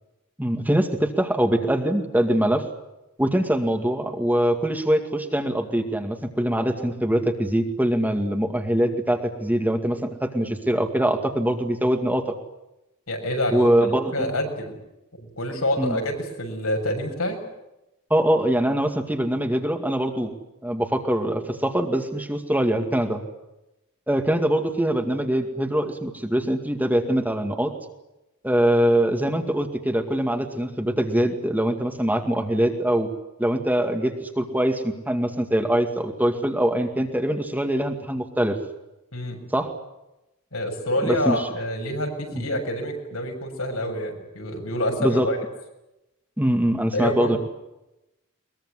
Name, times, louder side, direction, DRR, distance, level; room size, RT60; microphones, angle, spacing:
voice 1, 0.4-2.6 3.2-12.3 13.5-14.3 15.8-16.0 18.1-20.3 20.6-23.2 24.1-27.7 28.4-33.1 33.4-38.6 39.5-39.7 41.1-41.5 42.3-42.5 45.0-45.3 46.4-47.4, right 1 dB, 10° right, 4 dB, 2.1 m, -23 dB
voice 2, 13.1-13.7 14.1-14.8 15.2-17.4 39.1-39.4 40.5-45.4 46.9-47.4, left 1 dB, 75° left, 3 dB, 7.2 m, -27 dB
22.5 x 22.0 x 9.8 m, 0.94 s
head